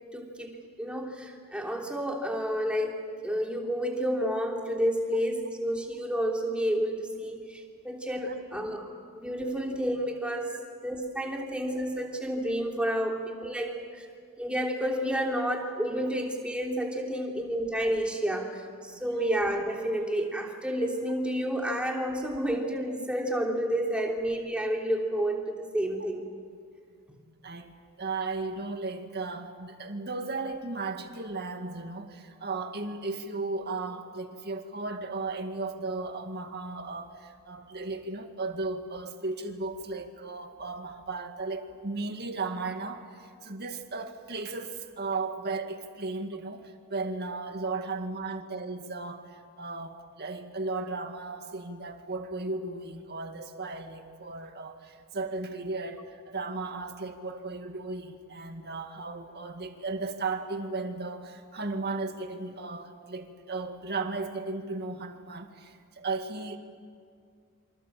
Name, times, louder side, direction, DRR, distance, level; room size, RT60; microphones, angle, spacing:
voice 1, 0.1-10.5 10.8-14.0 14.4-26.3 27.1-27.2, equal, 5° right, 0 dB, 3.2 m, -30 dB
voice 2, 28.0-66.6, right 3 dB, 45° right, 5 dB, 2.1 m, -35 dB
28.0 x 26.0 x 7.6 m, 2.1 s
head